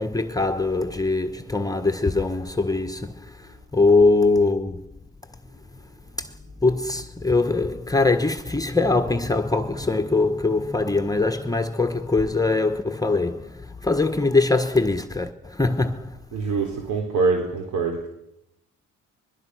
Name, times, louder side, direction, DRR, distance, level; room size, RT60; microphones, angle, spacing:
voice 1, 0.0-4.9 5.7-5.8 6.2-6.3 6.6-16.2, left 3 dB, 10° left, 1.4 m, -22 dB
voice 2, 16.3-18.1, right 4 dB, 80° right, 3.9 m, -24 dB
24.5 x 22.0 x 6.3 m
cardioid pair, 90°, 30 cm